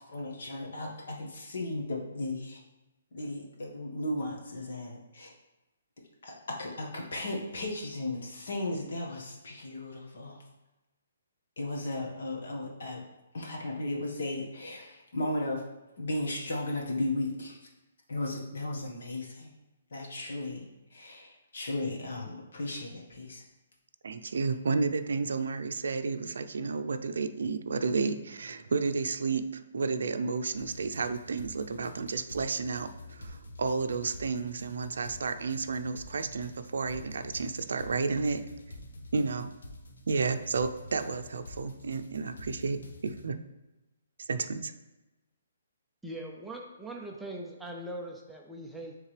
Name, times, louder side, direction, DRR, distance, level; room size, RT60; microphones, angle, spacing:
voice 1, 0.1-2.6 3.1-5.3 6.2-10.4 11.6-13.0 13.3-15.6 16.0-17.6 18.1-19.5 19.9-23.4, left 2 dB, 60° left, 0 dB, 1.5 m, -35 dB
voice 2, 24.0-38.4 39.1-39.5 40.1-43.4 44.3-44.7, right 4 dB, 75° right, 9 dB, 0.5 m, -31 dB
sound 1, 30.5-43.3, left 1 dB, 90° left, 1.1 m, -47 dB
voice 3, 46.0-49.0, right 1 dB, ahead, -1 dB, 0.4 m, -41 dB
9.5 x 3.6 x 3.3 m, 1.0 s
hypercardioid pair, 175°, 0 cm